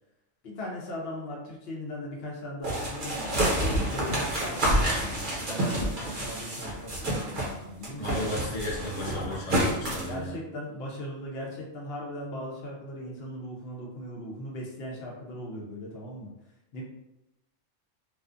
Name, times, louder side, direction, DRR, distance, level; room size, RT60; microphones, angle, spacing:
voice 1, 0.4-8.4 9.9-16.3 16.7-16.8, left 1 dB, 60° left, -3 dB, 0.8 m, -39 dB
sound 1, 2.6-7.5 7.8-10.1, right 1 dB, 50° right, 0.8 m, -28 dB
voice 2, 8.0-10.4, left 1 dB, 75° left, -3 dB, 1.1 m, -34 dB
2.4 x 2.3 x 2.5 m, 0.90 s
omnidirectional pair, 1.3 m